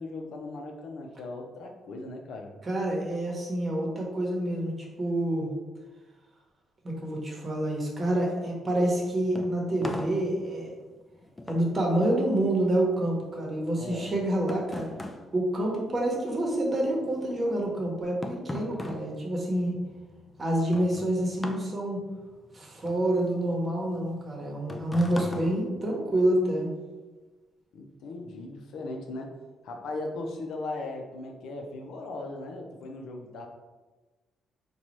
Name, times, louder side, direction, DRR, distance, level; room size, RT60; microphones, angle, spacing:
voice 1, 0.0-2.5 13.8-14.1 27.7-29.4 29.6-33.5, left 2 dB, 75° left, 3 dB, 0.5 m, -38 dB
voice 2, 2.6-5.5 6.8-10.8 11.5-14.9 15.3-19.8 20.4-22.0 22.5-26.7, right 1 dB, 35° right, -2 dB, 1.0 m, -27 dB
sound 1, 8.9-16.5 16.8-26.5, left 2 dB, 20° left, 0.4 m, -41 dB
3.9 x 2.3 x 3.0 m, 1.2 s
cardioid pair, 90°, 0 cm